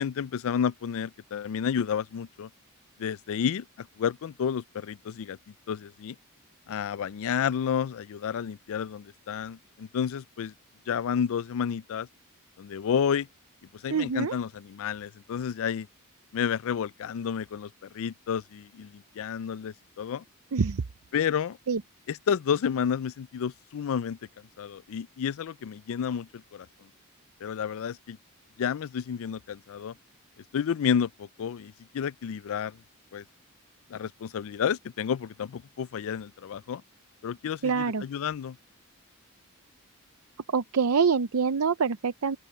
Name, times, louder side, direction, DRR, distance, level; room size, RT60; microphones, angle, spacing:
voice 1, 0.0-2.5 3.0-3.6 4.0-5.4 5.7-6.1 6.7-10.5 10.9-12.1 12.6-13.3 13.8-15.9 16.3-17.7 17.9-20.2 21.1-21.6 22.1-24.2 24.6-26.7 27.4-28.2 28.6-29.9 30.5-32.8 33.1-33.2 33.9-36.8 37.2-38.6, left 7 dB, 65° left, 0.4 m, -30 dB
voice 2, 13.9-14.4 20.5-20.8 21.7-21.8 37.6-38.0 40.5-42.4, right 5 dB, 70° right, 0.6 m, -25 dB
open air
head